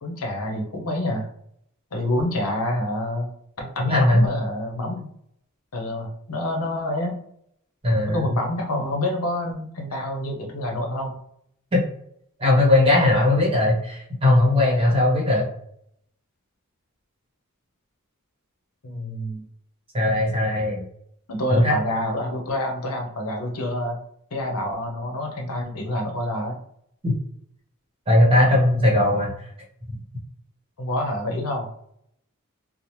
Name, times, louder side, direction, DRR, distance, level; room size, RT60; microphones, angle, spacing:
voice 1, 0.0-1.3 1.9-3.3 3.6-5.1 5.7-7.1 8.1-11.2 18.8-19.5 21.3-24.0 24.3-26.6 30.8-31.7, left 1 dB, 80° left, 2 dB, 0.7 m, -27 dB
voice 2, 3.9-4.3 7.8-8.3 9.9-10.0 11.7-11.8 12.4-15.4 19.9-20.8 21.5-21.7 27.0-27.2 28.1-29.5, left 1 dB, 25° right, -3 dB, 1.0 m, -19 dB
2.8 x 2.0 x 3.0 m, 0.71 s
head